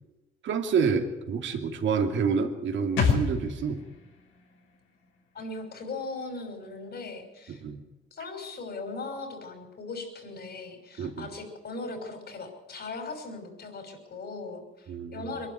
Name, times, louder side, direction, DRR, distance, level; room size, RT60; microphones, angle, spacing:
voice 1, 0.4-3.8 7.5-7.8 11.0-11.3 14.9-15.4, right 5 dB, 70° right, 4 dB, 2.7 m, -28 dB
sound 1, 3.0-6.5 6.7-6.8, left 5 dB, 85° left, 5.6 m, -31 dB
voice 2, 5.3-7.6 8.1-15.5, left 3 dB, 55° left, 4 dB, 6.3 m, -39 dB
23.5 x 11.5 x 9.8 m, 1.1 s
cardioid pair, 90°, 20 cm